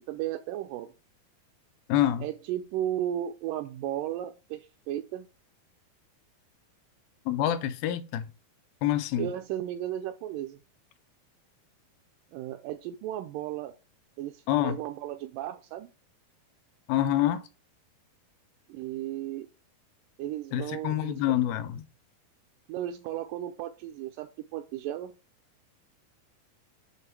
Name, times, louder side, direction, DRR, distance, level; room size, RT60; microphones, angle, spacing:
voice 1, 0.1-0.9 2.2-5.3 9.2-10.6 12.3-13.7 14.2-15.9 18.7-19.5 20.2-21.1 22.7-25.1, right 12 dB, 90° right, 1.8 m, -34 dB
voice 2, 1.9-2.3 7.3-8.3 8.8-9.3 14.5-14.8 16.9-17.4 20.5-21.8, left 12 dB, 80° left, 2.3 m, -26 dB
7.7 x 2.9 x 4.5 m
omnidirectional pair, 4.3 m